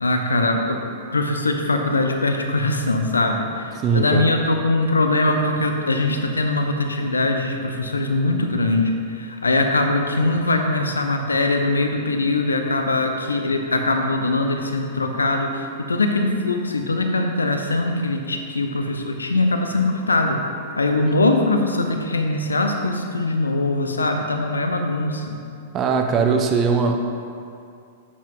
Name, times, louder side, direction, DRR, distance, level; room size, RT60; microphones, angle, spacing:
voice 1, 0.0-0.8 1.1-20.4 20.8-25.4, left 2 dB, 85° left, 4 dB, 0.8 m, -22 dB
voice 2, 3.8-4.3 25.7-27.0, right 5 dB, 30° right, 4 dB, 0.8 m, -20 dB
8.4 x 7.4 x 3.7 m, 2.5 s
figure-of-eight pair, 105°, 0 cm